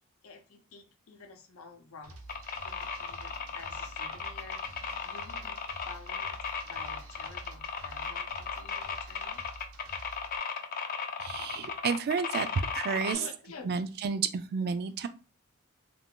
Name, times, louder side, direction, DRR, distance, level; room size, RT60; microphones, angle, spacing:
voice 1, 0.2-2.2 2.6-4.6 5.0-5.6 5.9-9.4 13.1-13.7, left 4 dB, 85° left, 0.7 m, -50 dB
sound 1, 2.0-10.4, right 2 dB, 90° right, 0.8 m, -49 dB
sound 2, 2.3-13.1, left 5 dB, 45° left, 0.4 m, -36 dB
voice 2, 11.2-12.5 12.7-13.2 13.6-15.1, right 5 dB, 50° right, 0.3 m, -31 dB
2.5 x 2.3 x 3.6 m
head